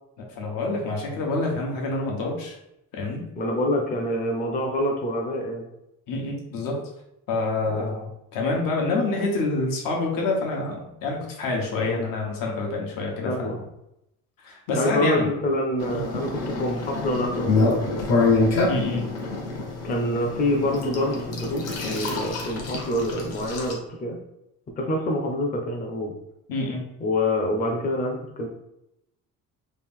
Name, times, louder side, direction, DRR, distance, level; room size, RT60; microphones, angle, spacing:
voice 1, 0.2-2.6 2.9-3.2 6.1-6.8 7.3-13.6 14.4-15.3 15.9-16.0 18.7-19.1 26.5-26.8, left 3 dB, 85° left, 0 dB, 1.0 m, -27 dB
voice 2, 3.3-5.6 7.7-7.9 11.8-12.0 13.2-13.6 14.7-18.0 19.8-24.2 24.8-26.1 27.0-28.5, left 1 dB, 25° left, 1 dB, 0.5 m, -26 dB
sound 1, 15.8-23.7, left 3 dB, 50° left, 0.8 m, -26 dB
3.2 x 2.5 x 3.6 m, 0.84 s
cardioid pair, 160°, 33 cm